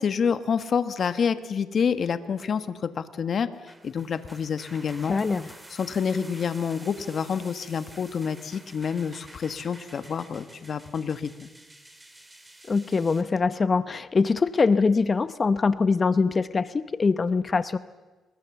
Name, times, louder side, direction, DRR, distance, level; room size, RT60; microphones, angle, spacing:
voice 1, 0.0-3.5 3.8-5.2 5.7-11.5, left 6 dB, 50° left, 12 dB, 1.4 m, -28 dB
sound 1, 3.5-13.2, right 1 dB, 10° right, 3.2 m, -49 dB
voice 2, 5.1-5.5 12.7-17.8, left 4 dB, 35° left, 15 dB, 0.8 m, -23 dB
27.0 x 21.0 x 7.2 m, 1.2 s
cardioid pair, 90°, 0 cm